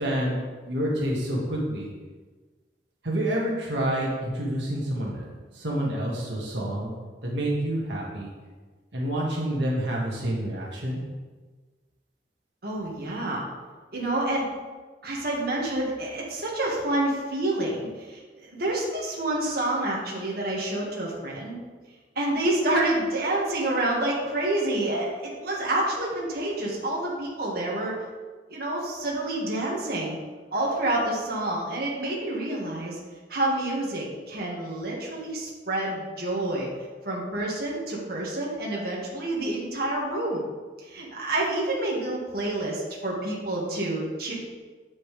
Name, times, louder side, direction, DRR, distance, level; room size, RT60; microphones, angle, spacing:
voice 1, 0.0-1.9 3.0-5.2 5.5-6.9 7.2-8.3 8.9-11.0, right 1 dB, 75° right, -3 dB, 1.8 m, -28 dB
voice 2, 12.6-13.4 13.9-14.5 15.0-21.6 22.2-28.0 28.5-30.2 30.5-33.0 33.3-36.7 37.0-40.4 40.8-44.3, right 1 dB, 60° right, -4 dB, 1.8 m, -28 dB
8.6 x 8.4 x 3.4 m, 1.4 s
head